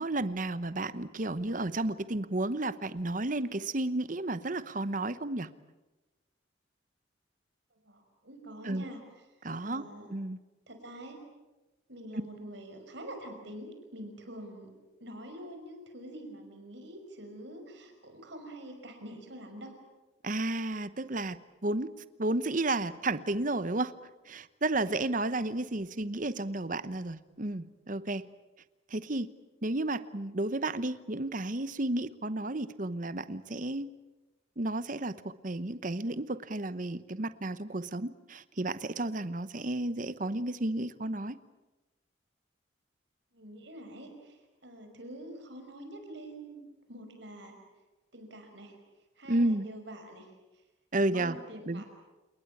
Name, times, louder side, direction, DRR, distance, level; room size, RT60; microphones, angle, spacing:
voice 1, 0.0-5.5 8.6-8.8 9.4-9.8 10.1-10.4 20.2-21.4 21.6-21.9 22.2-23.9 24.3-28.3 28.9-29.3 29.6-33.9 34.6-41.4 49.3-49.6 50.9-51.4 51.7-51.8, right 2 dB, 40° right, 14 dB, 1.0 m, -32 dB
voice 2, 7.8-9.0 9.6-10.1 10.7-11.2 11.9-14.7 15.0-19.8 25.9-26.1 43.3-47.5 48.1-48.8 49.2-50.3 51.0-51.8, right 1 dB, 60° right, 5 dB, 5.7 m, -46 dB
29.5 x 19.5 x 8.5 m, 1.1 s
head